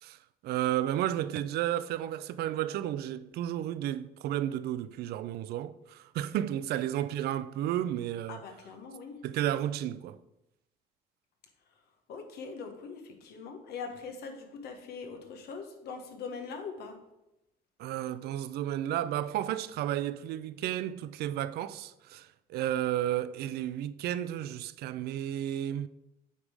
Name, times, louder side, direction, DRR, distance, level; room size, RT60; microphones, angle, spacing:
voice 1, 0.0-8.4 9.2-10.2 17.8-25.9, right 12 dB, 70° right, 0.4 m, -32 dB
voice 2, 8.3-9.2 12.1-17.0, left 5 dB, 70° left, 1.2 m, -42 dB
8.2 x 3.6 x 4.8 m
cardioid pair, 110°, 17 cm